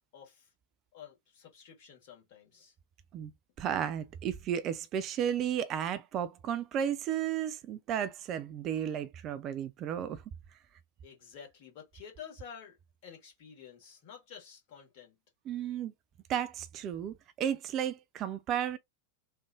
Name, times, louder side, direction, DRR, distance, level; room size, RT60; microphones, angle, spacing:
voice 1, 0.1-0.5 0.9-2.7 11.0-12.8 13.0-15.2, left 8 dB, 45° left, 1.7 m, -50 dB
voice 2, 3.6-10.2 15.5-15.9 16.3-18.8, right 9 dB, 35° right, 0.4 m, -33 dB
3.3 x 2.4 x 3.5 m
figure-of-eight pair, 90°, 0 cm